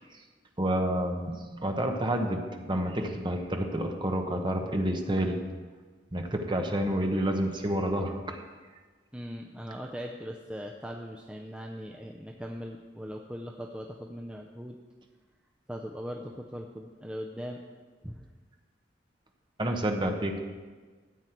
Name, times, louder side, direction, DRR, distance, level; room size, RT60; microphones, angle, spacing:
voice 1, 0.6-2.4 2.7-5.4 6.1-8.4 19.6-20.4, right 1 dB, 25° right, 4 dB, 1.0 m, -29 dB
voice 2, 9.1-14.8 15.7-17.6 18.0-18.3, equal, 5° right, 1 dB, 0.5 m, -40 dB
13.0 x 8.5 x 4.5 m, 1.4 s
head